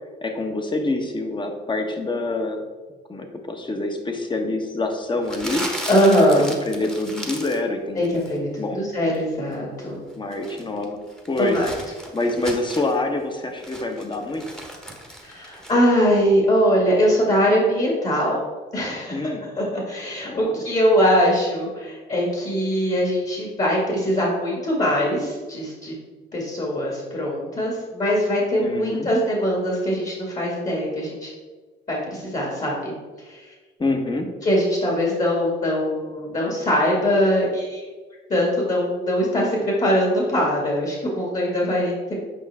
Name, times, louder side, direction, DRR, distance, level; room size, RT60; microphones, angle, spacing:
voice 1, 0.2-2.6 3.1-5.6 6.7-8.2 8.6-8.8 10.1-11.0 11.3-11.6 12.1-14.5 19.1-19.5 20.2-20.6 28.6-29.1 33.8-34.3, left 2 dB, 25° left, 4 dB, 1.2 m, -26 dB
Crumpling crinkling, 5.2-7.7 8.0-8.4 10.1-13.0 13.4-15.7, equal, 5° left, 1.2 m, -36 dB
voice 2, 5.9-6.5 8.0-10.0 11.4-11.7 15.2-18.4 18.7-19.3 19.6-26.0 26.3-31.3 31.9-32.9 33.2-33.5 34.4-37.8 38.3-42.1, equal, 40° left, -3 dB, 2.3 m, -22 dB
8.3 x 5.4 x 3.6 m, 1.4 s
cardioid pair, 90°, 20 cm